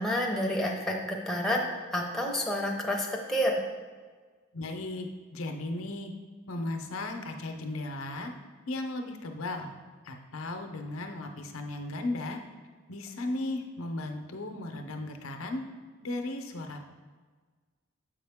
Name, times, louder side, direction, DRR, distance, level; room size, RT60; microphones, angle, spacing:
voice 1, 0.0-1.6 1.9-3.6, equal, ahead, -1 dB, 0.8 m, -29 dB
voice 2, 4.5-6.1 6.5-8.3 8.7-9.7 10.0-12.4 12.9-15.6 16.0-16.9, left 2 dB, 85° left, 4 dB, 0.7 m, -36 dB
7.2 x 5.0 x 3.5 m, 1.5 s
head